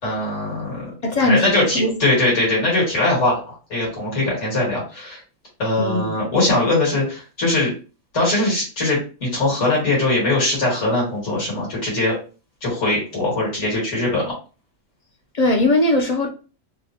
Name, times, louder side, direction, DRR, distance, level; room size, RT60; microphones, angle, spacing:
voice 1, 0.0-0.9 1.2-5.2 5.6-7.7 8.1-12.2 12.6-14.3, left 2 dB, 85° left, 2.1 m, -21 dB
voice 2, 1.0-1.9 5.8-6.2 15.3-16.3, left 2 dB, 50° left, 0.5 m, -19 dB
4.0 x 2.1 x 2.7 m
omnidirectional pair, 1.2 m